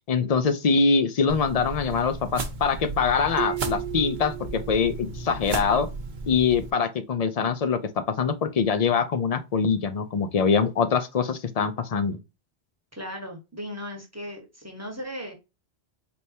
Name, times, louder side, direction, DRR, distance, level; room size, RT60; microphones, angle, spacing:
voice 1, 0.1-5.9 6.3-7.8 8.2-12.2, left 5 dB, 50° left, 0.5 m, -23 dB
sound 1, 1.3-6.7, right 3 dB, 50° right, 0.9 m, -35 dB
sound 2, 3.4-5.9, right 12 dB, 85° right, 0.9 m, -36 dB
voice 2, 12.9-15.3, equal, 15° right, 1.1 m, -37 dB
4.3 x 3.3 x 2.7 m
omnidirectional pair, 1.1 m